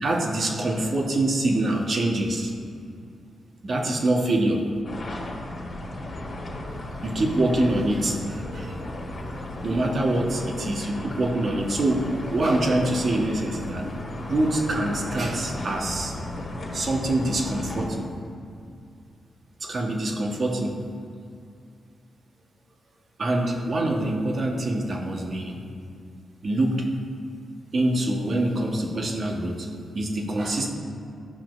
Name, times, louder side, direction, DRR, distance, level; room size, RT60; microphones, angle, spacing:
voice 1, 0.0-2.5 3.6-4.7 7.0-8.8 9.6-13.9 14.2-16.1 16.7-18.1 19.6-20.8 23.2-25.6 26.4-26.9 27.7-29.7 29.9-30.7, right 1 dB, 55° right, 1 dB, 1.3 m, -25 dB
sound 1, 4.8-17.9, left 1 dB, 55° left, 1.8 m, -35 dB
13.0 x 5.9 x 2.6 m, 2.5 s
hypercardioid pair, 40°, 0 cm